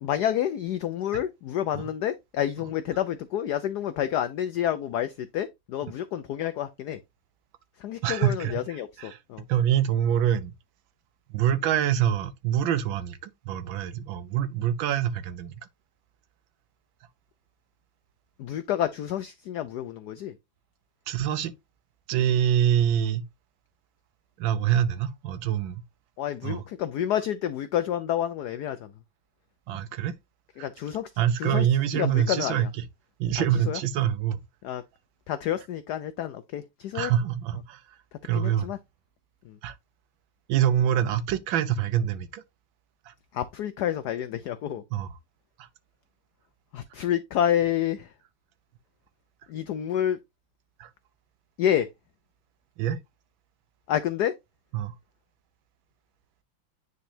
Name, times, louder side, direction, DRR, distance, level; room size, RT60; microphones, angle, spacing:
voice 1, 0.0-7.0 7.8-9.4 18.4-20.4 26.2-28.9 29.7-29.8 30.6-31.1 31.4-31.7 31.9-32.7 33.4-33.8 34.6-34.8 35.3-37.1 38.3-38.8 39.4-39.6 43.3-44.8 46.7-48.1 49.5-50.2 51.6-51.9 53.9-54.3, left 10 dB, 80° left, 0.9 m, -29 dB
voice 2, 8.0-8.6 9.0-9.2 9.5-10.5 11.3-15.5 21.1-21.5 22.1-23.3 24.4-25.8 26.4-26.6 29.7-30.1 30.6-30.7 31.2-32.7 33.2-34.4 36.9-37.8 38.2-38.7 39.6-39.8 40.5-42.4 43.1-43.2 44.9-45.1 45.6-45.7 50.8-50.9 52.8-53.0 54.7-54.9, right 10 dB, 75° right, 1.3 m, -25 dB
9.5 x 4.0 x 2.7 m
omnidirectional pair, 2.3 m